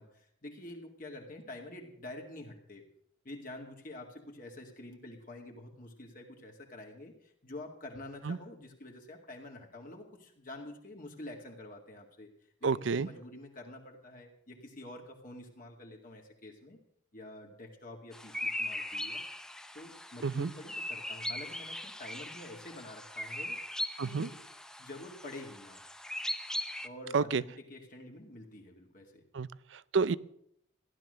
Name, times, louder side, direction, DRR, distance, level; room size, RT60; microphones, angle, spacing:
voice 1, 0.0-2.8 3.2-12.3 12.6-16.8 17.1-19.2 19.7-23.6 24.0-24.4 24.8-25.8 26.8-29.2, left 1 dB, 45° left, 1 dB, 2.1 m, -47 dB
voice 2, 12.6-13.1 20.2-20.5 24.0-24.3 27.1-27.4 29.3-30.2, right 5 dB, 70° right, 19 dB, 0.5 m, -30 dB
sound 1, 18.1-26.9, left 1 dB, 5° left, 0.6 m, -39 dB
15.0 x 11.5 x 6.5 m, 0.69 s
head